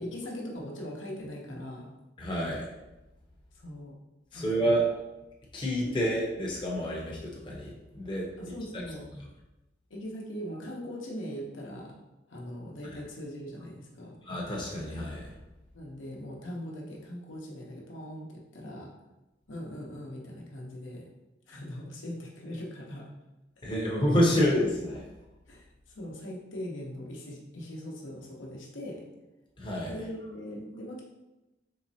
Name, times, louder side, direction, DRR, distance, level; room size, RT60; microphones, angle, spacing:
voice 1, 0.0-1.9 3.5-4.0 4.3-4.5 5.9-6.0 8.4-9.1 9.9-12.0 12.3-14.2 15.7-18.9 19.5-21.0 21.5-23.1 23.7-24.0 25.5-29.0 29.9-31.0, equal, 90° left, -2 dB, 0.8 m, -40 dB
voice 2, 2.2-2.7 4.3-4.8 5.5-8.3 8.7-8.8 12.8-13.0 14.2-15.3 23.6-25.0 29.6-29.9, equal, 25° left, -3 dB, 0.6 m, -28 dB
3.8 x 3.1 x 2.7 m, 0.99 s
head